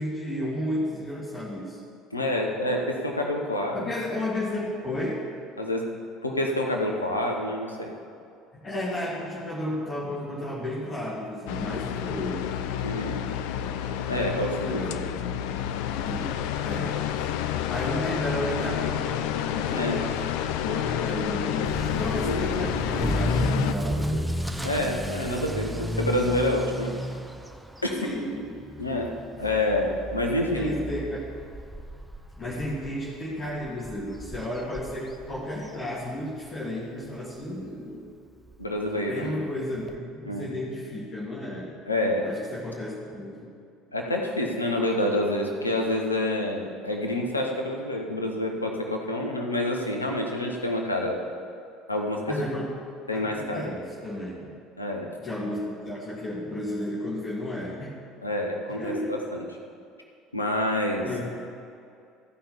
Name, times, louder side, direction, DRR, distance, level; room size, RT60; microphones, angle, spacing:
voice 1, 0.0-1.8 3.7-5.2 8.6-12.5 14.6-15.1 16.0-16.3 16.6-16.9 17.2-19.2 19.4-20.1 20.4-24.3 25.7-25.8 28.0-28.6 30.4-31.3 32.4-38.1 39.1-41.7 42.2-43.5 52.3-52.7 53.1-54.5 55.2-57.9 58.8-59.1 61.0-61.2, left 1 dB, 30° left, -6 dB, 2.4 m, -33 dB
voice 2, 2.1-3.9 5.6-5.8 6.2-7.9 12.8-13.2 14.1-14.8 19.7-20.0 22.2-22.4 24.6-26.9 27.8-27.9 28.8-29.1 29.4-30.7 38.6-39.3 40.2-40.5 41.9-42.2 43.9-51.2 51.9-52.3 53.1-53.7 54.8-55.1 58.2-59.4 60.3-61.1, left 1 dB, 85° left, 1 dB, 1.1 m, -27 dB
sound 1, 11.5-23.7, left 10 dB, 60° left, 0.5 m, -29 dB
Motor vehicle (road) / Accelerating revving vroom, 21.7-36.5 36.8-37.2 37.7-37.8 38.1-38.2 38.5-38.6 39.9-40.0, right 1 dB, 5° right, 0.8 m, -33 dB
15.0 x 5.6 x 7.1 m, 2.4 s
figure-of-eight pair, 60°, 0 cm